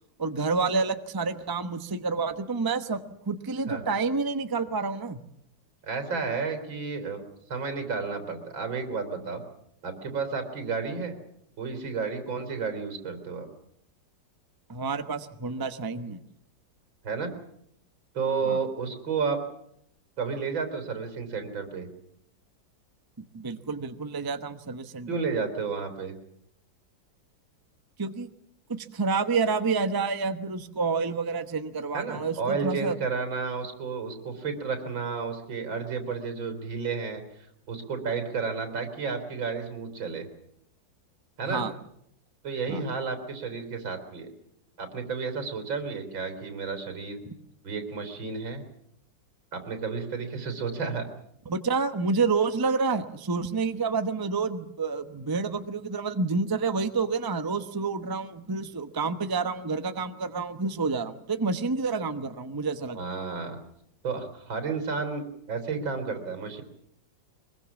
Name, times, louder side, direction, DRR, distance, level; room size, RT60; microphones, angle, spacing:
voice 1, 0.2-5.2 14.7-16.2 18.4-18.6 23.2-25.1 28.0-28.3 28.7-33.0 41.5-41.7 42.7-42.8 51.5-63.0, right 4 dB, 15° right, 9 dB, 0.7 m, -29 dB
voice 2, 5.8-7.2 7.5-9.4 9.8-11.2 11.6-13.5 17.0-17.3 18.1-19.4 20.2-21.9 25.1-26.1 31.9-37.2 37.7-40.3 41.4-41.6 42.4-44.3 44.8-47.2 47.6-48.6 49.5-51.1 62.9-63.6 64.0-66.6, right 5 dB, 80° right, 7 dB, 4.4 m, -31 dB
23.5 x 21.5 x 7.2 m, 0.72 s
omnidirectional pair, 2.1 m